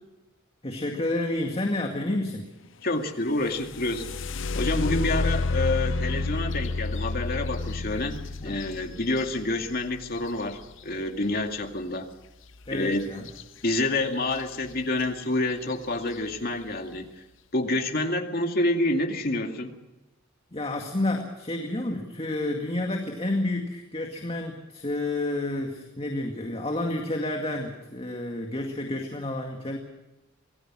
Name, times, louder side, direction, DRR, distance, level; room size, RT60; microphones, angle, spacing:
voice 1, 0.6-2.5 8.4-8.6 12.7-13.3 20.5-29.8, left 1 dB, 30° left, 2 dB, 2.1 m, -30 dB
voice 2, 2.8-4.1 4.6-12.1 12.7-13.3 13.6-17.1 17.5-19.7, left 2 dB, 45° left, 4 dB, 2.3 m, -28 dB
sound 1, 3.4-11.2 13.3-13.4 13.8-14.4 15.0-15.1 15.6-16.0, left 3 dB, 70° left, 0.8 m, -30 dB
26.0 x 18.5 x 6.2 m, 1.0 s
head